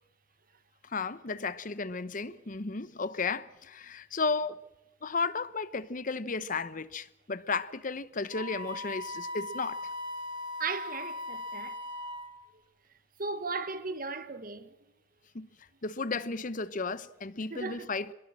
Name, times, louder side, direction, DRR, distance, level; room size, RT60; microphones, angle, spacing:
voice 1, 0.8-4.6 5.0-9.9 15.3-15.5 15.8-18.1, left 4 dB, 45° left, 0.9 m, -34 dB
Wind instrument woodwind instrument, 8.3-12.5, left 2 dB, 25° right, 1.2 m, -39 dB
voice 2, 10.6-11.8 12.5-12.6 13.2-14.7 17.4-17.9, right 4 dB, 50° right, 1.5 m, -36 dB
24.0 x 22.0 x 7.5 m
head